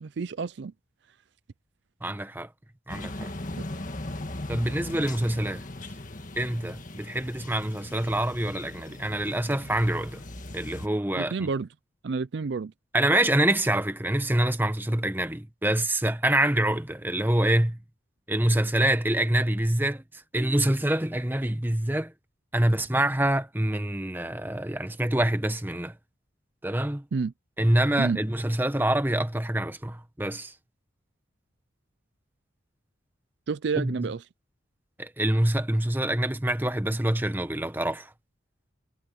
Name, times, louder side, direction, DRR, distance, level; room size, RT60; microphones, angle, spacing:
voice 1, 0.0-0.7 11.2-11.7 12.0-12.7 27.1-27.3 28.0-28.2 33.5-34.2, right 4 dB, 60° right, 0.4 m, -29 dB
voice 2, 2.0-2.5 2.9-3.3 4.5-5.6 6.4-10.2 10.5-11.5 12.9-17.8 18.3-22.1 22.5-25.9 26.6-27.0 27.6-30.5 33.8-34.1 35.0-38.1, right 1 dB, 10° right, 1.0 m, -26 dB
sound 1, 2.9-10.9, left 1 dB, 40° left, 1.8 m, -39 dB
head